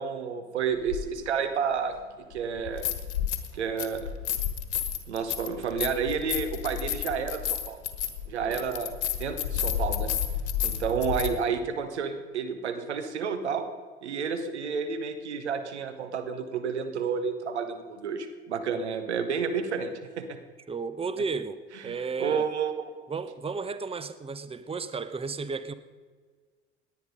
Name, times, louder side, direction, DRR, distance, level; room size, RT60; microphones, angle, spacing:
voice 1, 0.0-1.9 2.3-2.9 3.5-4.1 5.1-7.8 8.3-8.9 9.2-10.1 10.6-13.6 14.0-20.4 21.8-22.8, right 6 dB, 85° right, 8 dB, 1.3 m, -30 dB
sound 1, 0.9-1.0 2.6-3.5 3.8-11.3, left 9 dB, 75° left, 1.3 m, -31 dB
voice 2, 20.7-21.6 21.8-22.5 23.1-25.7, right 4 dB, 15° right, 13 dB, 1.0 m, -33 dB
18.0 x 10.5 x 5.2 m, 1.5 s
hypercardioid pair, 65°, 33 cm